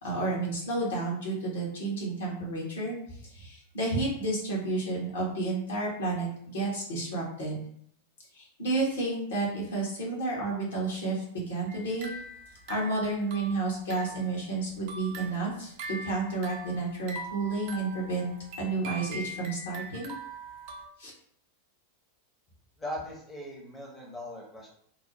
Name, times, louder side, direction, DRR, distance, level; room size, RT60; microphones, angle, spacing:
voice 1, 0.0-7.6 8.3-12.1 12.7-20.1 21.0-21.1, right 3 dB, 65° left, -4 dB, 1.0 m, -31 dB
sound 1, 11.7-14.3 14.7-20.9, right 2 dB, 45° right, 0.5 m, -42 dB
voice 2, 22.8-24.7, left 1 dB, 15° left, -3 dB, 0.7 m, -39 dB
2.7 x 2.0 x 2.9 m, 0.66 s
figure-of-eight pair, 90°, 0 cm